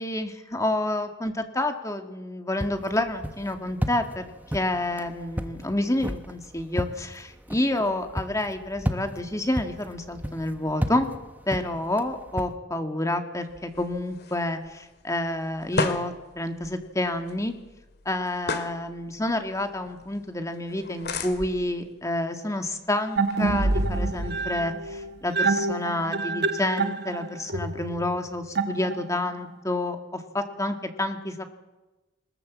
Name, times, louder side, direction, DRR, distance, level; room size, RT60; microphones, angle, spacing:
voice 1, 0.0-11.1 11.5-17.5 18.1-31.4, left 1 dB, 15° left, 6 dB, 1.9 m, -29 dB
sound 1, 2.6-12.5, equal, 10° right, 1.1 m, -34 dB
sound 2, 13.4-24.7, left 3 dB, 55° left, 2.1 m, -37 dB
sound 3, 23.2-29.3, right 3 dB, 55° right, 1.2 m, -27 dB
22.0 x 21.0 x 7.4 m, 1.1 s
head